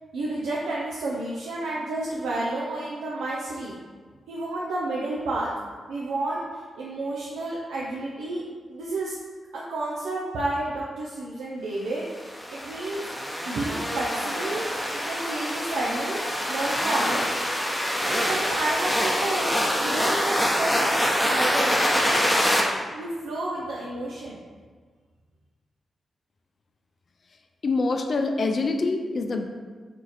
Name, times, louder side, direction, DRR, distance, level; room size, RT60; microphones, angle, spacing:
voice 1, 0.1-3.8 4.3-5.5 5.9-8.4 8.7-9.1 9.5-13.0 13.4-14.6 14.9-17.2 18.0-19.5 19.8-22.2 22.9-24.4, right 2 dB, 90° right, -5 dB, 0.5 m, -31 dB
sound 1, 12.2-22.6, equal, 5° left, 0.9 m, -25 dB
voice 2, 27.6-29.5, left 3 dB, 55° left, 5 dB, 0.4 m, -25 dB
4.4 x 2.5 x 4.0 m, 1.5 s
supercardioid pair, 50°, 0 cm